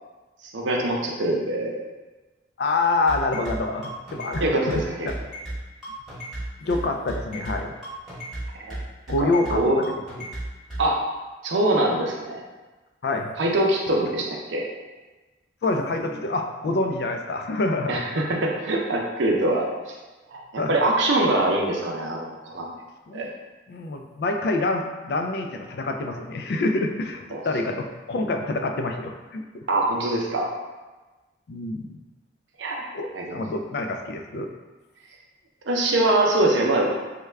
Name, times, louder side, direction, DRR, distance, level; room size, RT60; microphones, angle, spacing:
voice 1, 0.5-1.8 4.4-5.1 8.5-8.8 9.2-9.8 10.8-11.0 11.4-12.4 13.4-14.7 17.9-19.7 20.3-22.7 23.1-23.3 27.3-27.4 29.7-30.5 32.6-32.9 33.1-33.4 35.7-36.9, right 1 dB, 85° right, -1 dB, 0.6 m, -23 dB
voice 2, 2.6-5.2 6.6-7.7 9.1-9.9 13.0-13.3 15.6-18.0 20.6-20.8 23.1-23.3 23.7-29.6 31.5-32.0 32.9-34.5, left 2 dB, 60° left, 4 dB, 0.3 m, -27 dB
sound 1, 3.1-10.9, right 1 dB, ahead, 1.0 m, -33 dB
3.4 x 2.2 x 3.2 m, 1.2 s
head